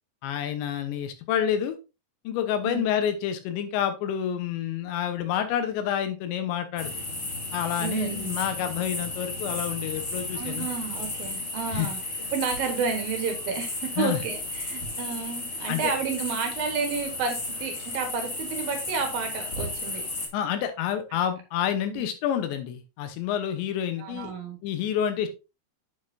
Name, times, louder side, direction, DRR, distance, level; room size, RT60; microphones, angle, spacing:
voice 1, 0.2-1.8 2.2-6.9 7.5-10.7 11.7-11.9 14.0-14.2 15.7-15.9 20.3-24.3 24.6-25.3, left 9 dB, 85° left, 8 dB, 3.3 m, -28 dB
sound 1, 6.8-20.3, left 2 dB, 35° left, 1.5 m, -34 dB
voice 2, 7.8-8.3 10.3-12.0 12.3-20.0 21.9-22.0 24.0-24.6, right 6 dB, 65° right, 4 dB, 2.8 m, -31 dB
8.1 x 6.5 x 2.7 m, 0.29 s
omnidirectional pair, 5.0 m